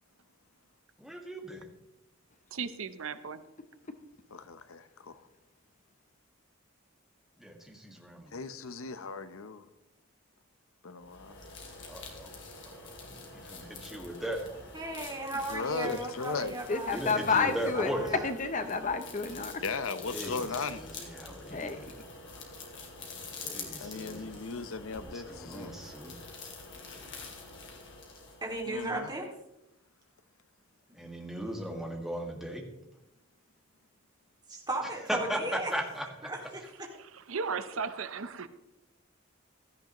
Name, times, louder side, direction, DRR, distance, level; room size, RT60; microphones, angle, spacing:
voice 1, 1.0-1.6 7.4-8.3 11.9-12.3 12.6-14.4 16.9-18.1 20.1-20.4 20.8-22.0 23.4-24.3 25.0-26.2 30.9-32.6 35.1-36.3, equal, ahead, 0 dB, 1.7 m, -37 dB
voice 2, 2.5-3.4 36.9-38.5, right 5 dB, 70° right, 12 dB, 0.7 m, -36 dB
voice 3, 4.3-5.2 8.3-9.7 10.8-11.4 15.5-16.5 19.6-20.8 23.8-25.7 28.6-29.1, left 4 dB, 75° left, 12 dB, 0.7 m, -37 dB
sound 1, 11.0-28.8, left 3 dB, 55° left, 2.6 m, -46 dB
voice 4, 14.7-17.4 17.7-18.3 28.4-29.3 34.5-35.8 36.2-36.9, right 2 dB, 20° right, 0 dB, 2.2 m, -36 dB
voice 5, 16.7-17.9 18.2-19.6 21.5-21.8, left 4 dB, 35° left, 9 dB, 0.6 m, -30 dB
16.0 x 13.0 x 3.0 m, 0.86 s
head